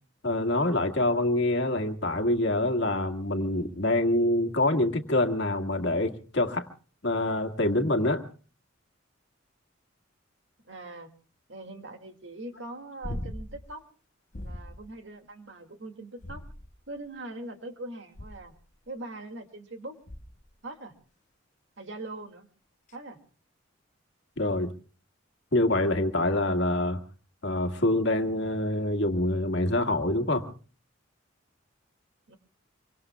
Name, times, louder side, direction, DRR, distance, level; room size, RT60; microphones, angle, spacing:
voice 1, 0.2-6.7 7.0-8.2 24.4-24.7 25.5-27.0 27.4-30.5, left 1 dB, 60° left, 4 dB, 1.9 m, -26 dB
voice 2, 10.6-11.1 11.5-13.8 14.4-16.5 16.9-18.5 18.9-20.0 20.6-20.9 21.8-22.5 22.9-23.2 32.3-32.4, right 2 dB, 65° right, 5 dB, 2.3 m, -41 dB
vocals heavy breathing, 13.0-13.7 14.3-14.9 16.2-16.9 18.1-18.6 20.1-20.5 22.9-23.0, left 1 dB, 40° left, 0.9 m, -39 dB
26.5 x 24.0 x 2.3 m, 0.38 s
head